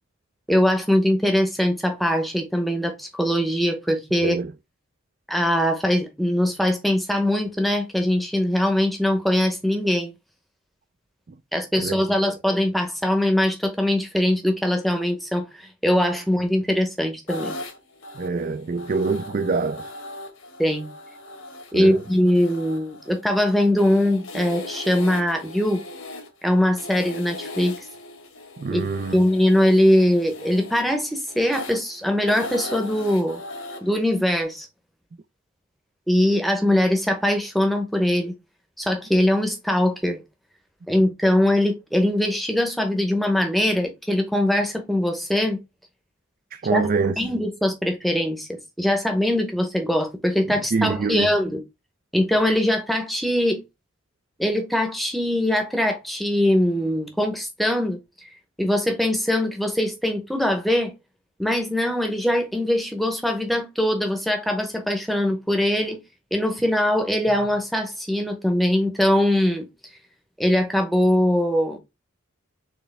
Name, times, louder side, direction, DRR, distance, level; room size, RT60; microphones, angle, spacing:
voice 1, 0.5-4.4 5.3-10.1 11.5-17.5 20.6-20.9 21.7-25.8 26.4-27.8 28.7-28.8 29.1-33.4 33.8-34.7 36.1-38.4 38.8-40.2 40.9-45.6 46.7-46.9 47.2-51.6 52.1-53.6 54.4-58.0 58.6-60.9 61.4-66.0 66.3-69.7 70.4-71.8, left 1 dB, ahead, 0.8 m, -22 dB
sound 1, 17.3-34.4, left 2 dB, 75° left, 1.2 m, -38 dB
voice 2, 18.2-19.9 21.7-22.0 28.6-29.2 46.5-47.1 50.7-51.3, right 4 dB, 40° right, 0.3 m, -25 dB
4.4 x 3.3 x 3.2 m
head